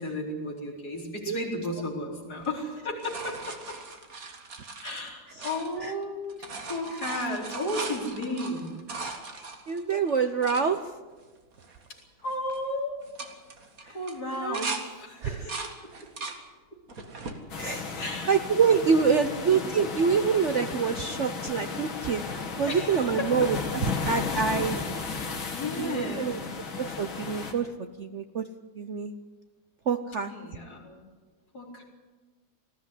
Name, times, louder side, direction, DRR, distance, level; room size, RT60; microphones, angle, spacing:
voice 1, 0.0-3.8 4.8-8.8 11.9-13.0 13.9-15.7 18.0-18.4 18.7-19.6 22.7-23.5 25.5-26.5 30.3-31.0 31.5-31.8, left 1 dB, 45° left, -1 dB, 4.7 m, -34 dB
sound 1, 2.4-6.0 6.3-10.6 11.2-11.3 11.5-12.0 12.3-12.6 13.0-14.8 15.2-16.4 16.9-17.4 18.0-18.8 20.4-20.5, right 4 dB, 45° right, 2.1 m, -39 dB
voice 2, 9.4-10.8 14.4-14.6 15.2-15.3 17.6-22.2 22.6-23.6 24.0-24.8 25.8-26.4 26.8-28.4 28.8-29.1 29.9-30.3, right 6 dB, 80° right, 8 dB, 0.6 m, -26 dB
sound 2, 17.5-27.5, left 4 dB, 70° left, 2.9 m, -34 dB
19.5 x 15.0 x 9.8 m, 1.3 s
omnidirectional pair, 2.3 m